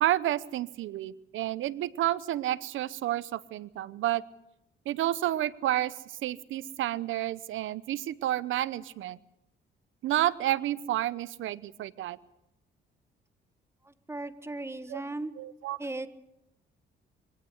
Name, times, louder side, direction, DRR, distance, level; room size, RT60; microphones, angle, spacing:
voice 1, 0.0-4.2 4.9-5.9 6.2-9.2 10.0-12.2 14.9-15.0 15.4-15.8, right 13 dB, 80° right, 18 dB, 0.9 m, -30 dB
voice 2, 13.8-15.3 15.8-16.1, right 2 dB, 15° right, 11 dB, 1.5 m, -37 dB
23.0 x 17.0 x 8.1 m, 0.85 s
cardioid pair, 90°, 20 cm